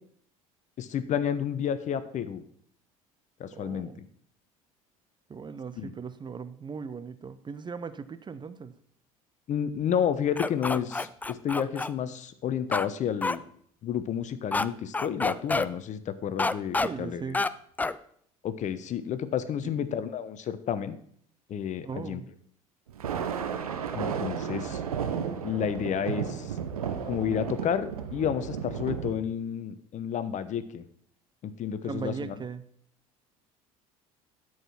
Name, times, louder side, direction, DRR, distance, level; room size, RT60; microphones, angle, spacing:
voice 1, 0.8-2.4 3.4-3.9 5.8-5.9 9.5-13.4 13.8-17.2 18.4-21.0 21.5-22.2 23.9-24.8 25.4-26.6 27.0-30.8 31.4-32.4, left 8 dB, 40° left, 13 dB, 0.9 m, -31 dB
voice 2, 3.5-4.0 5.3-8.7 16.8-17.4 19.6-19.7 21.8-22.3 31.8-32.6, right 6 dB, 25° right, 13 dB, 0.7 m, -38 dB
sound 1, 10.4-11.9 12.7-12.9 13.2-13.3 14.5-14.6 14.9-15.7 16.4-16.9 17.3-17.5 17.8-17.9, left 3 dB, 10° left, 0.4 m, -27 dB
Thunder, 22.9-29.1, right 7 dB, 80° right, 0.9 m, -33 dB
12.5 x 4.9 x 5.9 m, 0.63 s
figure-of-eight pair, 65°, 18 cm